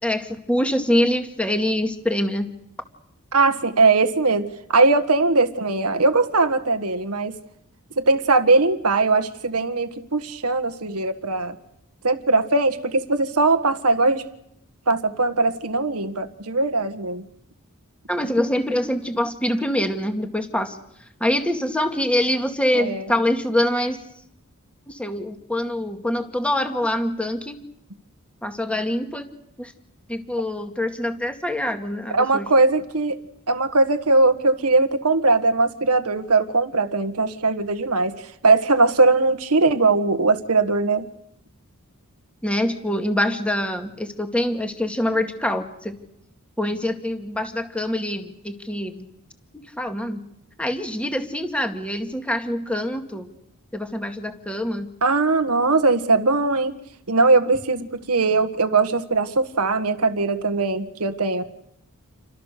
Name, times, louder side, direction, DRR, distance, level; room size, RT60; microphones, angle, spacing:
voice 1, 0.0-2.5 18.1-20.8 21.2-24.0 24.9-27.6 28.4-29.3 29.6-29.7 30.1-32.5 42.4-46.0 46.6-49.1 49.5-50.2 50.6-53.3 53.7-54.9, left 1 dB, 5° left, 5 dB, 2.1 m, -25 dB
voice 2, 3.3-7.3 8.0-11.5 12.0-14.2 14.9-17.2 22.7-23.1 32.1-33.2 33.5-38.1 38.4-41.0 55.0-56.8 57.1-61.4, right 3 dB, 85° right, 9 dB, 1.7 m, -20 dB
29.5 x 25.5 x 6.8 m, 0.76 s
head